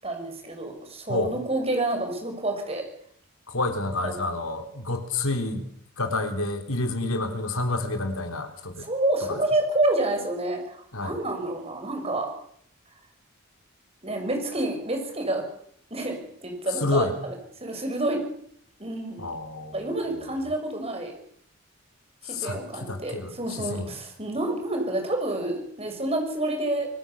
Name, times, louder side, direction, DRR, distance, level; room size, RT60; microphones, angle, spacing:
voice 1, 0.0-2.8 4.0-4.1 8.8-12.3 14.0-15.4 15.9-17.3 17.6-18.2 18.8-19.3 19.7-21.1 22.2-26.9, right 2 dB, 30° right, 4 dB, 6.4 m, -28 dB
voice 2, 3.5-5.7 6.0-8.9 9.3-9.4 10.9-11.1 16.8-17.1 19.2-20.3 22.3-23.9, left 2 dB, 80° left, 6 dB, 3.7 m, -29 dB
27.0 x 19.0 x 7.1 m, 0.65 s
head